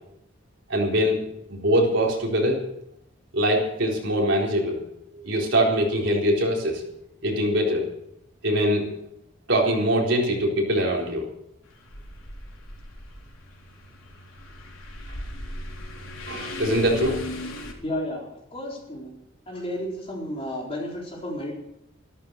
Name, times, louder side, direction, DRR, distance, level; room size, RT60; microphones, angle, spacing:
voice 1, 0.7-2.7 3.3-4.8 5.1-6.8 7.2-7.9 8.4-8.9 9.5-11.3 16.3-17.3, equal, 60° right, -1 dB, 4.2 m, -23 dB
sound 1, 11.7-17.7, left 1 dB, 80° left, 3.9 m, -37 dB
voice 2, 17.8-19.1 19.5-21.5, left 1 dB, 30° left, -2 dB, 4.1 m, -32 dB
14.0 x 13.5 x 6.7 m, 0.79 s
head